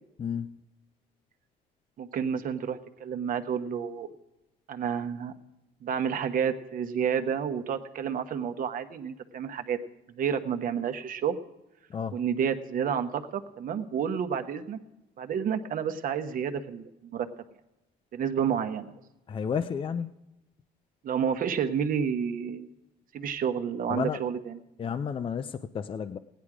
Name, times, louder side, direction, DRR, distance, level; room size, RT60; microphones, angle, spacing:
voice 1, 0.2-0.6 11.9-12.2 19.3-20.1 23.9-24.2 24.8-26.2, left 7 dB, 30° left, 11 dB, 0.5 m, -32 dB
voice 2, 2.0-4.1 4.7-5.3 5.8-9.8 10.2-11.4 12.1-14.8 15.2-17.3 18.1-18.9 21.0-22.7 23.1-24.6, right 7 dB, 55° right, 8 dB, 1.1 m, -30 dB
16.0 x 10.5 x 4.9 m, 0.94 s
cardioid pair, 110°, 17 cm